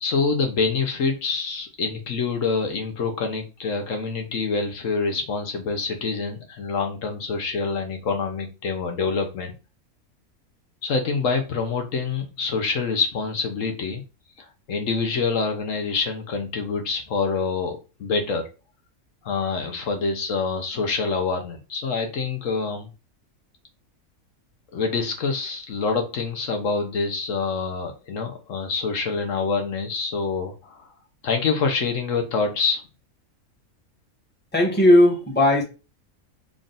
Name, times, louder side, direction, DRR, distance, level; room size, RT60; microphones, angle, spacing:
voice 1, 0.0-9.5 10.8-14.0 14.4-18.5 19.2-22.9 24.7-30.9 31.2-32.8, left 4 dB, 70° left, 1.1 m, -26 dB
voice 2, 34.5-35.6, left 1 dB, 10° left, 0.9 m, -16 dB
3.7 x 2.5 x 3.9 m
omnidirectional pair, 1.4 m